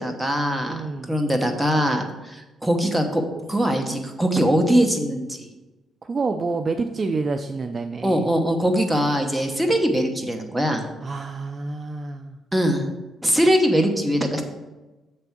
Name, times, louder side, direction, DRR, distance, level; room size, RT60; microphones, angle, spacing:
voice 1, 0.0-3.2 3.5-5.3 8.0-10.9 12.5-12.8 13.2-14.4, equal, 10° right, 4 dB, 1.0 m, -21 dB
voice 2, 0.7-1.2 6.0-8.2 10.7-12.4, right 4 dB, 35° right, 7 dB, 0.4 m, -28 dB
7.6 x 3.5 x 5.9 m, 1.1 s
cardioid pair, 90°, 0 cm